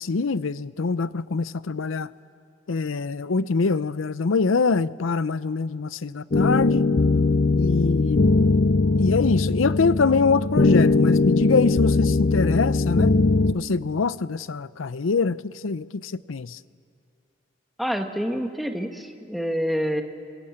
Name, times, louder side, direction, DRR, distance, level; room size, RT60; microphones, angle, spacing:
voice 1, 0.0-2.1 2.7-6.9 7.6-8.4 9.0-13.2 13.5-16.6, left 4 dB, 90° left, 0.6 m, -24 dB
sound 1, 6.3-13.5, left 3 dB, 45° left, 0.5 m, -20 dB
voice 2, 17.8-20.0, equal, ahead, 1.4 m, -27 dB
27.5 x 22.5 x 8.7 m
head